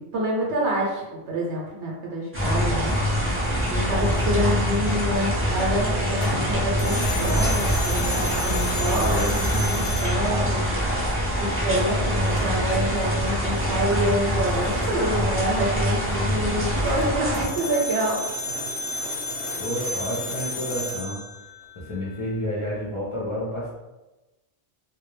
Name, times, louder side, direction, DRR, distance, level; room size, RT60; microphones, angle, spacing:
voice 1, 0.0-3.0 3.7-10.6 11.4-18.2, equal, 85° right, -3 dB, 0.9 m, -27 dB
sound 1, 2.3-17.5, equal, 15° right, 0.5 m, -24 dB
sound 2, 6.2-11.2 12.2-12.8 16.7-22.2, left 2 dB, 85° left, 0.9 m, -32 dB
sound 3, 14.4-17.8, right 1 dB, 30° left, 0.8 m, -40 dB
voice 2, 19.6-21.2 21.8-23.7, left 1 dB, 45° left, -7 dB, 0.4 m, -30 dB
2.2 x 2.0 x 3.1 m, 1.1 s
omnidirectional pair, 1.1 m